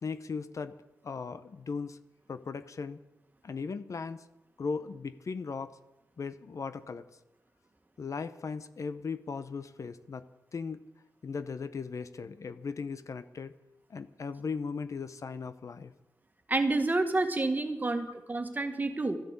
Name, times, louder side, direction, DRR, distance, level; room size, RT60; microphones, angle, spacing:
voice 1, 0.0-0.8 1.0-2.0 2.3-3.0 3.4-4.2 4.6-5.8 6.2-7.0 8.0-10.3 10.5-10.8 11.2-13.5 13.9-15.9, left 5 dB, 60° left, 12 dB, 0.8 m, -37 dB
voice 2, 16.5-19.2, right 2 dB, 30° right, 7 dB, 1.8 m, -29 dB
13.5 x 11.0 x 8.2 m, 0.98 s
cardioid pair, 70°, 6 cm